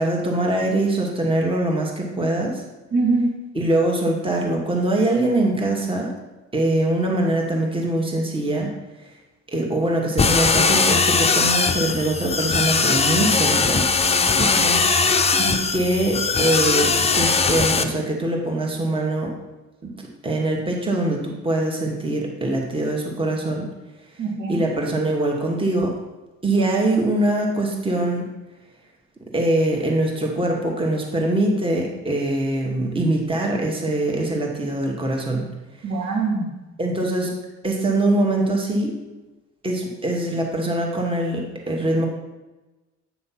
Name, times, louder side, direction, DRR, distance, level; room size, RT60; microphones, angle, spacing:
voice 1, 0.0-2.6 3.5-6.1 6.5-8.7 9.5-13.9 15.3-19.3 19.8-19.9 20.2-23.7 24.5-25.9 26.4-28.3 29.3-35.5 36.8-37.3 37.6-38.9 39.6-42.1, right 1 dB, 15° right, 0 dB, 1.3 m, -23 dB
voice 2, 2.9-3.4 14.4-14.9 24.2-24.7 35.8-36.5, right 3 dB, 80° right, -1 dB, 2.1 m, -24 dB
sound 1, 10.2-17.8, left 4 dB, 20° left, 0.5 m, -20 dB
8.2 x 3.1 x 5.7 m, 1.1 s
cardioid pair, 90°, 30 cm